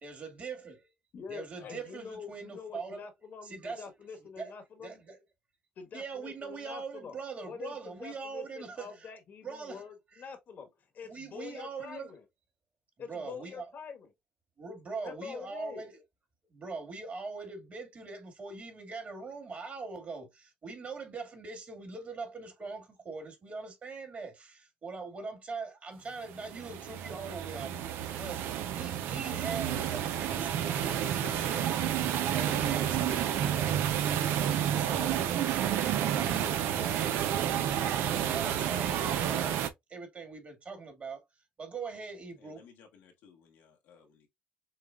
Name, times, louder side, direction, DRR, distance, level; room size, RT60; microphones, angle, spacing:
voice 1, 0.0-0.9 1.3-3.0 3.4-3.9 4.4-4.5 4.8-5.2 5.9-9.1 9.4-10.2 11.1-12.1 13.1-13.7 14.6-16.0 16.5-28.4 28.7-31.7 32.0-34.4 34.8-37.6 38.0-41.2 41.6-42.6, right 4 dB, 40° right, 2.1 m, -42 dB
voice 2, 1.1-5.0 5.8-7.2 7.4-10.7 10.9-12.2 13.0-14.1 15.0-15.8, left 6 dB, 60° left, 1.4 m, -45 dB
sound 1, 26.3-39.7, right 10 dB, 80° right, 0.6 m, -30 dB
voice 3, 42.4-44.3, left 7 dB, 85° left, 1.5 m, -57 dB
6.4 x 2.3 x 2.4 m
supercardioid pair, 80°, 4 cm